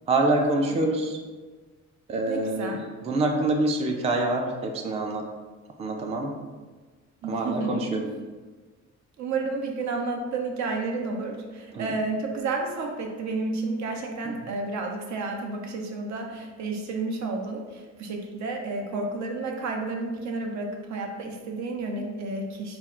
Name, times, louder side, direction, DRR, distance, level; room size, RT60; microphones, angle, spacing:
voice 1, 0.1-1.2 2.1-5.3 5.8-6.4 7.3-8.1 11.7-11.9 14.2-14.3, right 2 dB, 20° right, 2 dB, 0.3 m, -26 dB
voice 2, 2.3-2.8 7.2-8.1 9.2-22.8, right 3 dB, 75° right, 2 dB, 0.7 m, -31 dB
3.5 x 2.1 x 4.3 m, 1.3 s
cardioid pair, 125°, 29 cm